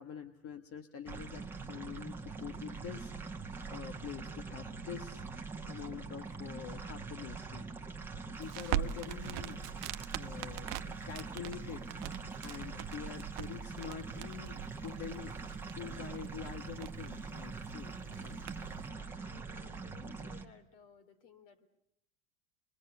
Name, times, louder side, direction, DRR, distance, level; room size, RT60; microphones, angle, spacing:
voice 1, 0.0-5.2 5.7-7.7 8.1-9.6 10.1-15.4 15.7-18.4, left 8 dB, 35° left, 7 dB, 1.3 m, -46 dB
sound 1, 1.1-20.4, right 4 dB, 5° right, 1.7 m, -43 dB
voice 2, 4.3-4.6 18.5-21.7, left 7 dB, 55° left, 7 dB, 3.1 m, -60 dB
Crackle, 8.4-18.9, right 14 dB, 60° right, 1.0 m, -43 dB
26.5 x 22.5 x 8.2 m, 0.79 s
hypercardioid pair, 105°, 37 cm